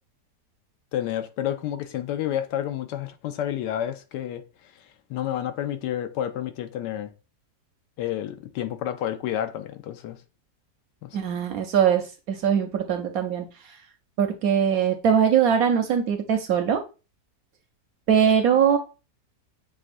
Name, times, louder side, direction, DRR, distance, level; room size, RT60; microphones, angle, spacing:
voice 1, 0.9-4.4 5.1-7.1 8.0-10.2 11.0-11.2, left 11 dB, 80° left, 1.2 m, -30 dB
voice 2, 11.1-13.5 14.2-16.8 18.1-18.8, right 8 dB, 70° right, 0.9 m, -21 dB
7.4 x 2.5 x 2.5 m
omnidirectional pair, 1.8 m